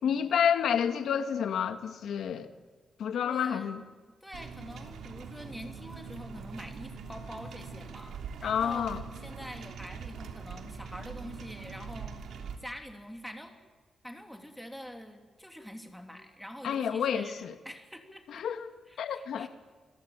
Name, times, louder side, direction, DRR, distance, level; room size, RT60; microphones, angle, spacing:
voice 1, 0.0-2.5 3.0-3.8 8.4-9.0 16.6-17.6 18.3-18.7 19.0-19.5, left 8 dB, 80° left, 1.7 m, -29 dB
voice 2, 3.2-3.7 4.2-13.5 14.0-18.4 18.9-19.5, equal, ahead, 2.9 m, -45 dB
sound 1, 4.3-12.6, right 5 dB, 85° right, 3.0 m, -43 dB
29.0 x 22.5 x 8.8 m
wide cardioid pair, 155°, 0 cm